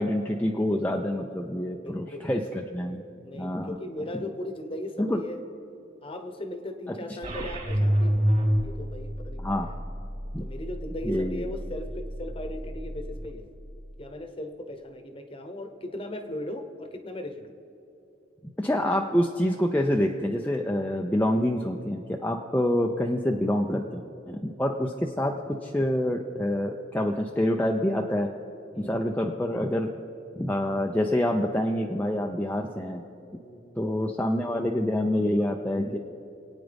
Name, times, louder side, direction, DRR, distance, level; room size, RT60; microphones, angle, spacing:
voice 1, 0.0-3.0 3.3-3.8 4.1-4.2 5.0-5.2 6.9-7.0 9.4-9.7 10.3-10.5 11.0-11.5 18.6-28.3 28.8-29.9 30.4-33.0 33.3-33.4 33.8-36.0, left 1 dB, 10° left, 1 dB, 0.5 m, -27 dB
voice 2, 1.8-2.4 3.1-5.4 6.0-8.2 8.6-9.8 10.4-13.5 14.0-17.5 28.7-29.2 33.4-34.1, left 1 dB, 30° left, 7 dB, 1.0 m, -38 dB
sound 1, 7.2-13.3, equal, 40° right, 3.2 m, -29 dB
27.0 x 9.2 x 3.5 m, 2.9 s
head